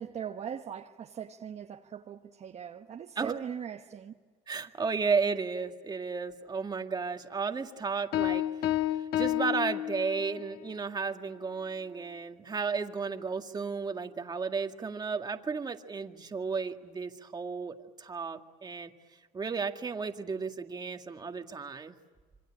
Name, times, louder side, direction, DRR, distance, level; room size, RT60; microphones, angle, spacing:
voice 1, 0.0-4.1, right 8 dB, 45° right, 1.2 m, -40 dB
voice 2, 4.5-8.7 9.2-18.9 19.3-22.0, right 5 dB, 25° right, 2.0 m, -33 dB
sound 1, 8.1-10.5, left 13 dB, 80° left, 1.3 m, -30 dB
27.0 x 25.0 x 8.8 m
cardioid pair, 115°, 16 cm